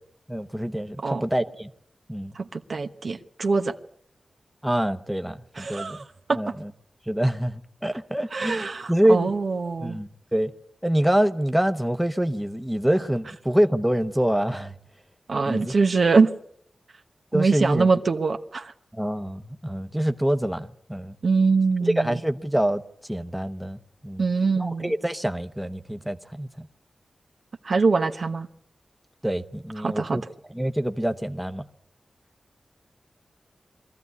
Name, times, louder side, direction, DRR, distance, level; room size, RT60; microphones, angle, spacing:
voice 1, 0.3-1.7 2.1-2.3 4.6-6.0 6.3-6.7 7.1-9.3 9.8-10.5 10.8-14.8 15.5-15.8 17.3-17.9 18.9-21.1 21.8-22.8 23.1-24.2 24.6-26.7 29.2-30.2 30.5-31.6, right 1 dB, 5° right, 1.0 m, -25 dB
voice 2, 2.3-3.7 5.6-6.0 6.3-6.5 8.3-10.0 15.3-16.3 17.3-18.7 21.2-22.1 24.2-24.9 27.6-28.5 29.8-30.2, right 4 dB, 65° right, 1.1 m, -23 dB
22.5 x 14.0 x 9.6 m
wide cardioid pair, 70°, 0 cm